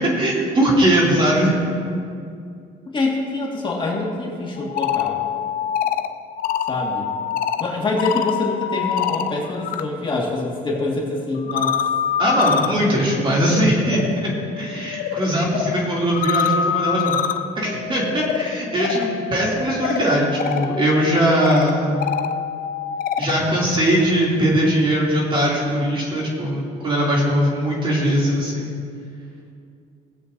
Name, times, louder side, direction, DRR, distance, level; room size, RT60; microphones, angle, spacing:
voice 1, 0.0-1.6 12.2-17.2 17.6-22.0 23.2-28.7, right 1 dB, 30° right, -4 dB, 2.8 m, -20 dB
voice 2, 2.9-5.2 6.7-7.1 7.6-11.8 12.6-12.9, left 2 dB, 30° left, -3 dB, 1.9 m, -25 dB
sound 1, 4.6-9.8 10.1-23.4, left 8 dB, 55° left, 0.6 m, -26 dB
19.5 x 7.7 x 2.7 m, 2.4 s
cardioid pair, 110°, 17 cm